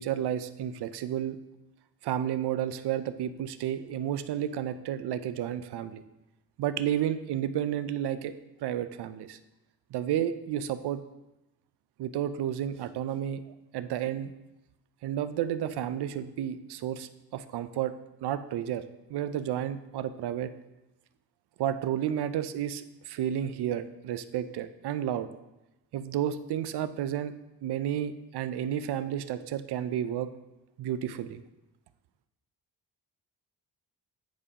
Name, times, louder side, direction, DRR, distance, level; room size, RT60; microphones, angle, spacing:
voice 1, 0.0-1.4 2.0-6.0 6.6-8.3 8.6-9.4 9.9-11.0 12.0-13.4 13.7-14.3 15.0-17.9 18.2-18.8 19.1-20.5 21.6-25.3 25.9-27.3 27.6-30.3 30.8-31.4, right 10 dB, 70° right, 12 dB, 0.5 m, -31 dB
9.4 x 4.8 x 2.9 m, 0.97 s
cardioid pair, 95°, 41 cm